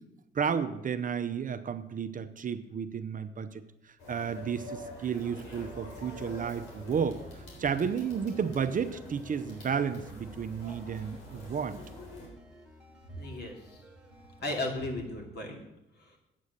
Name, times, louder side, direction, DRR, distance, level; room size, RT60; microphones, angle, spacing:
voice 1, 0.3-11.8, right 7 dB, 40° right, 10 dB, 0.7 m, -32 dB
sound 1, 4.0-12.3, left 2 dB, 90° left, 3.8 m, -47 dB
sound 2, 5.4-14.7, right 2 dB, 5° right, 1.7 m, -53 dB
voice 2, 13.2-13.8 14.4-15.6 16.0-16.2, left 1 dB, 55° left, 1 dB, 2.7 m, -35 dB
8.5 x 8.4 x 6.5 m, 0.87 s
cardioid pair, 90°, 20 cm